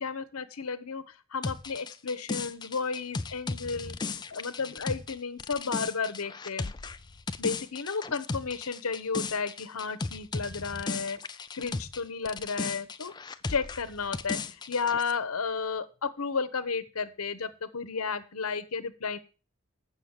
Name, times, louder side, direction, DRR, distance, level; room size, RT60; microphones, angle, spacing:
voice 1, 0.0-4.0 4.3-6.7 7.4-11.2 11.5-13.1 13.5-19.2, left 5 dB, 90° left, 12 dB, 0.9 m, -33 dB
sound 1, 1.4-12.0 12.3-15.1, left 4 dB, 20° left, 0.4 m, -36 dB
8.1 x 6.2 x 7.2 m, 0.36 s
head